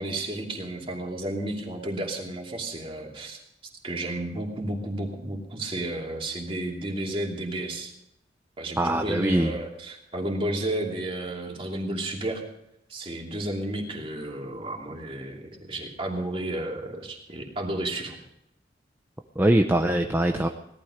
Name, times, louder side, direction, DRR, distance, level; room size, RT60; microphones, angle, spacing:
voice 1, 0.0-3.4 3.8-7.9 8.6-12.4 12.9-18.2, right 1 dB, 30° right, 0 dB, 2.9 m, -32 dB
voice 2, 8.8-9.5 19.4-20.5, right 1 dB, 10° right, 4 dB, 0.7 m, -22 dB
18.0 x 12.5 x 5.1 m, 0.81 s
head